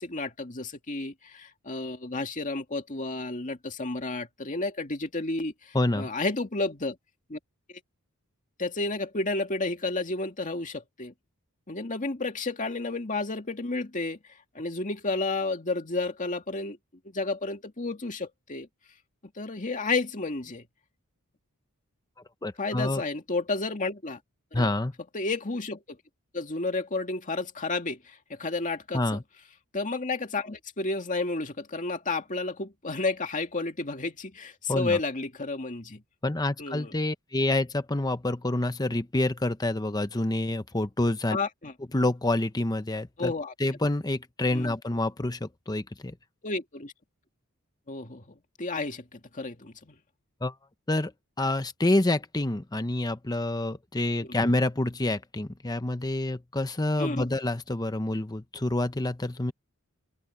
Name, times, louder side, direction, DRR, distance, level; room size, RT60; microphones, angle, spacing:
voice 1, 0.0-7.0 7.3-7.4 8.6-11.1 11.7-14.2 14.5-16.8 17.0-18.7 19.4-20.6 22.6-24.2 24.5-24.7 25.1-26.0 26.3-29.2 29.7-36.0 36.6-36.9 41.3-41.7 43.2-43.5 44.5-44.7 46.4-46.9 47.9-49.9 54.2-54.3 57.0-57.3, left 3 dB, 35° left, 2.1 m, -31 dB
voice 2, 5.7-6.1 22.4-23.0 24.5-24.9 28.9-29.2 34.7-35.0 36.2-41.4 41.9-43.3 43.6-46.1 50.4-50.5 50.9-51.1 51.4-59.5, left 2 dB, 20° left, 0.8 m, -27 dB
open air
head